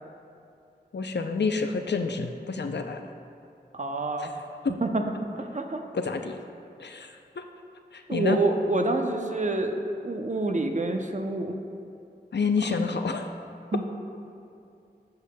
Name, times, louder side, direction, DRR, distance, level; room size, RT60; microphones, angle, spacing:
voice 1, 0.9-3.0 5.9-6.4 6.8-7.1 7.4-7.5 8.1-8.4 12.3-13.3, left 4 dB, 80° left, 6 dB, 0.4 m, -28 dB
voice 2, 3.7-4.5 4.8-5.1 5.3-5.8 8.1-11.6 12.6-12.7 13.7-13.8, right 2 dB, 45° right, 4 dB, 0.5 m, -27 dB
10.5 x 6.6 x 2.2 m, 2.6 s
wide cardioid pair, 50°, 18 cm